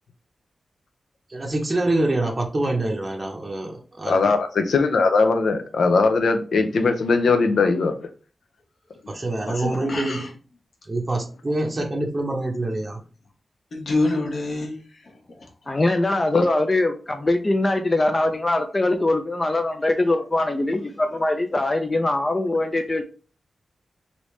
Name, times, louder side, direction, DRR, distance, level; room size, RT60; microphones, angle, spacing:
voice 1, 1.3-4.3 9.1-10.2 10.9-13.0, right 2 dB, 25° right, 0 dB, 0.6 m, -25 dB
voice 2, 4.1-7.9 16.3-16.4, left 4 dB, 90° left, 7 dB, 0.5 m, -20 dB
voice 3, 9.5-10.3 13.7-15.5, left 2 dB, 60° left, 1 dB, 1.0 m, -27 dB
voice 4, 15.7-23.0, left 2 dB, 25° left, 5 dB, 0.3 m, -22 dB
3.3 x 2.6 x 3.1 m, 0.37 s
wide cardioid pair, 120°, 0 cm